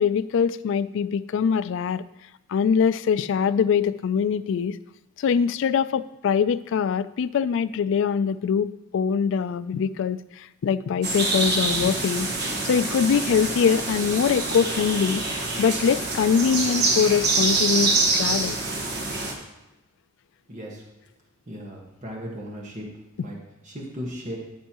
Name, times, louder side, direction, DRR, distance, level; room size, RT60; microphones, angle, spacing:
voice 1, 0.0-2.0 2.5-4.8 5.2-12.3 12.6-18.6 23.2-23.3, left 6 dB, 65° left, 15 dB, 0.3 m, -23 dB
sound 1, 11.0-19.3, right 3 dB, 55° right, 1.4 m, -25 dB
voice 2, 20.5-20.8 21.5-22.9 23.2-23.4 23.6-24.4, equal, 40° right, -2 dB, 1.4 m, -36 dB
14.0 x 5.4 x 2.9 m, 0.98 s
head